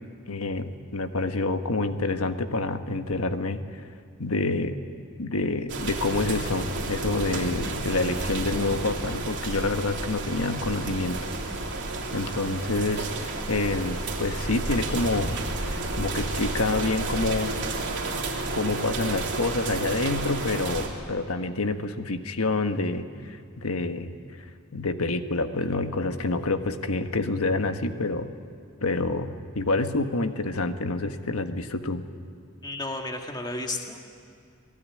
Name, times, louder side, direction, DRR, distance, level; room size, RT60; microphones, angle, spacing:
voice 1, 0.3-3.6 4.2-4.8 5.2-11.2 12.1-15.3 15.7-17.5 18.5-24.2 24.7-28.3 28.8-32.0, left 2 dB, 75° left, 8 dB, 1.4 m, -27 dB
sound 1, 5.7-20.9, right 2 dB, 55° right, 3.4 m, -31 dB
voice 2, 32.6-34.1, left 2 dB, 20° left, 2 dB, 1.9 m, -33 dB
27.5 x 18.5 x 9.7 m, 2.3 s
head